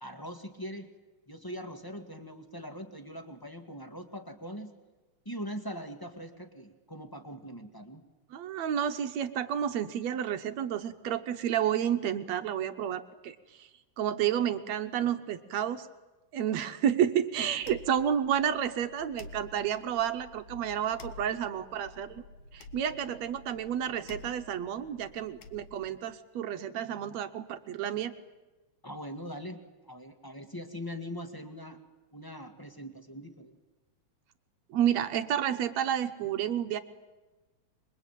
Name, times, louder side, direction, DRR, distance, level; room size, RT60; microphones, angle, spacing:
voice 1, 0.0-0.9 1.3-4.7 5.2-8.0 28.8-31.8 32.1-33.5, equal, 10° left, 6 dB, 1.5 m, -42 dB
voice 2, 8.3-13.7 14.0-15.9 16.3-22.2 22.5-28.1 34.7-36.8, right 9 dB, 70° right, 9 dB, 2.1 m, -30 dB
sound 1, 17.4-26.0, left 3 dB, 75° left, 2.8 m, -51 dB
27.0 x 23.0 x 9.1 m, 1.2 s
omnidirectional pair, 3.4 m